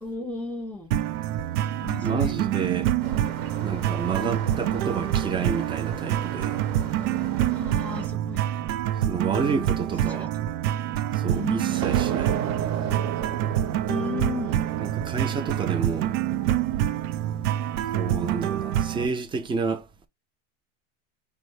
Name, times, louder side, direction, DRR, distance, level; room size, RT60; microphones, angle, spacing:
voice 1, 0.0-0.9 1.8-2.4 4.2-4.4 7.5-8.5 10.0-10.5 11.4-11.7 13.9-14.6, left 4 dB, 5° left, 1.0 m, -34 dB
sound 1, 0.9-19.1, right 11 dB, 85° right, 0.7 m, -26 dB
voice 2, 2.0-2.9 3.6-6.6 9.0-10.3 11.1-12.4 14.8-16.2 17.9-19.9, right 5 dB, 10° right, 0.5 m, -30 dB
sound 2, 3.0-8.1, right 6 dB, 55° right, 1.5 m, -38 dB
sound 3, 11.3-17.7, right 9 dB, 40° right, 0.9 m, -34 dB
5.1 x 2.2 x 4.7 m
supercardioid pair, 140°, 42 cm